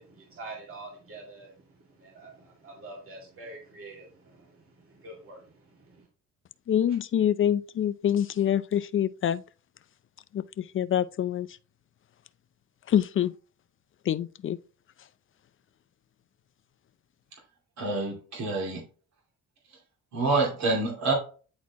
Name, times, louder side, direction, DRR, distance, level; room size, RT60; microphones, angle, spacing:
voice 1, 0.0-6.1, right 2 dB, 45° right, 2.0 m, -46 dB
voice 2, 6.7-9.4 10.3-11.5 12.9-13.3 14.1-14.6, left 10 dB, 45° left, 0.4 m, -26 dB
voice 3, 17.8-18.8 20.1-21.1, right 3 dB, 65° right, 2.5 m, -27 dB
9.5 x 4.2 x 2.9 m
cardioid pair, 90°, 30 cm